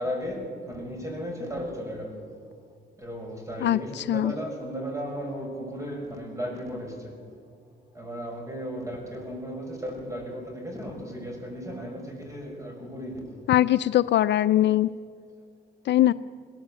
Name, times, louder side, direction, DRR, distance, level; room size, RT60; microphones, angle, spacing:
voice 1, 0.0-2.2 3.0-7.2 7.9-13.4, equal, 15° right, 2 dB, 6.5 m, -35 dB
voice 2, 3.6-4.3 13.5-14.9 15.9-16.1, left 13 dB, 65° left, 14 dB, 0.5 m, -21 dB
22.0 x 17.0 x 7.7 m, 2.2 s
cardioid pair, 90°, 20 cm